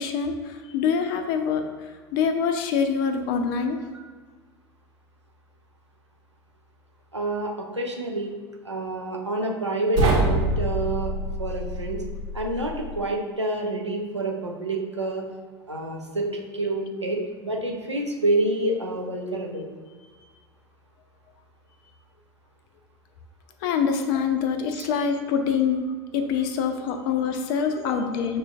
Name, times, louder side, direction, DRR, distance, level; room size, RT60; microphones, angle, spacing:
voice 1, 0.0-1.6 2.1-3.8 23.6-28.4, left 6 dB, 50° left, 6 dB, 0.5 m, -25 dB
voice 2, 7.1-8.3 8.6-11.1 11.4-12.0 12.3-15.2 15.7-19.7 24.7-24.9 27.8-28.0, right 2 dB, 90° right, -1 dB, 0.6 m, -28 dB
sound 1, 9.9-13.0, right 1 dB, 55° right, 1.0 m, -26 dB
6.2 x 2.5 x 2.4 m, 1.4 s
figure-of-eight pair, 75°, 14 cm